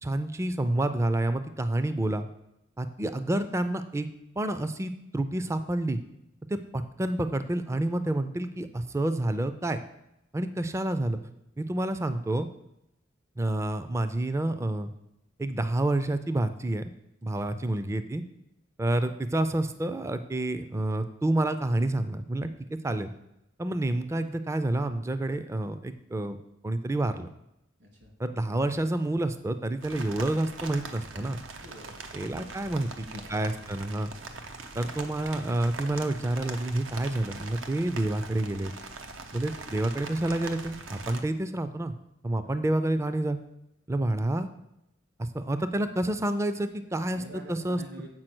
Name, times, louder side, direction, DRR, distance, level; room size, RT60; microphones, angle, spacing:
voice 1, 0.0-2.3 2.8-4.1 4.4-6.0 6.5-9.8 10.3-11.2 11.6-12.5 13.4-14.9 15.4-16.9 17.2-18.2 18.8-22.5 22.8-23.1 23.6-26.4 26.6-27.3 28.2-31.4 32.1-34.1 34.8-38.7 39.3-41.9 42.2-43.4 43.9-44.5 45.2-47.2 47.5-47.8, right 1 dB, 15° right, 10 dB, 0.3 m, -29 dB
voice 2, 17.3-17.6 27.8-28.1 31.5-32.0 32.4-33.4 42.4-42.7 47.0-48.1, equal, 60° right, 0 dB, 2.3 m, -48 dB
sound 1, 29.8-41.2, right 3 dB, 85° right, 0.8 m, -42 dB
7.6 x 4.8 x 6.0 m, 0.84 s
head